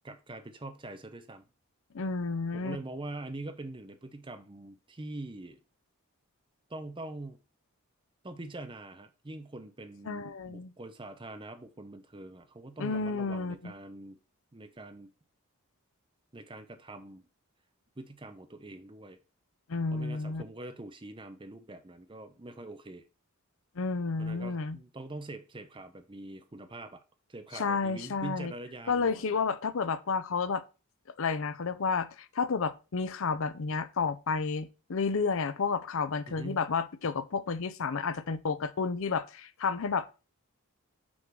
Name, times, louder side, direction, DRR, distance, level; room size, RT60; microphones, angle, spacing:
voice 1, 0.0-1.5 2.5-5.6 6.7-7.4 8.2-14.2 14.5-15.1 16.3-17.2 18.0-19.2 19.9-23.1 24.2-27.0 27.3-29.4 36.3-36.6, right 2 dB, 20° right, 0.7 m, -44 dB
voice 2, 1.9-2.8 10.1-10.7 12.8-13.7 19.7-20.4 23.8-24.8 27.5-28.5 28.9-30.6 31.2-40.1, left 4 dB, 65° left, 0.5 m, -31 dB
6.1 x 3.9 x 5.9 m
head